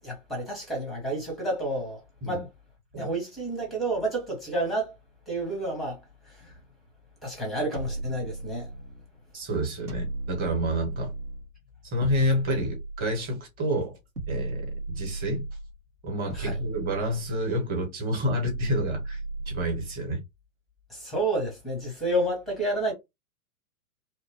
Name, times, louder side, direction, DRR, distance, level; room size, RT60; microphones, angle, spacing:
voice 1, 0.0-2.5 3.0-4.9 5.3-6.0 6.3-6.5 7.2-8.7 16.3-16.6 20.9-22.9, right 1 dB, ahead, 0.6 m, -30 dB
sound 1, 7.7-9.0 9.9-11.5 12.0-13.4 14.1-15.8 16.3-17.7 18.4-20.0, right 2 dB, 90° right, 0.9 m, -35 dB
voice 2, 9.3-11.1 11.8-14.0 14.3-15.4 16.0-19.2 19.5-20.2, equal, 20° right, 1.0 m, -29 dB
2.7 x 2.1 x 2.9 m
figure-of-eight pair, 110°, 45 cm